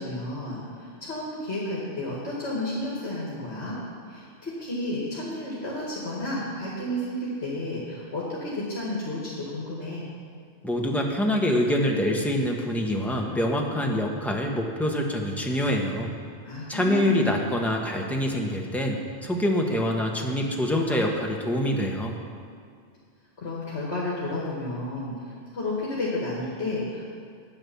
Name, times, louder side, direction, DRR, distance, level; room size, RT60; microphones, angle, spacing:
voice 1, 0.0-3.8 4.1-10.0 16.4-17.4 23.4-25.1 25.5-27.2, left 1 dB, 65° left, -6 dB, 2.4 m, -32 dB
voice 2, 10.6-16.1 16.7-22.2, left 1 dB, ahead, 0 dB, 1.2 m, -25 dB
10.5 x 9.3 x 7.1 m, 2.2 s
omnidirectional pair, 1.2 m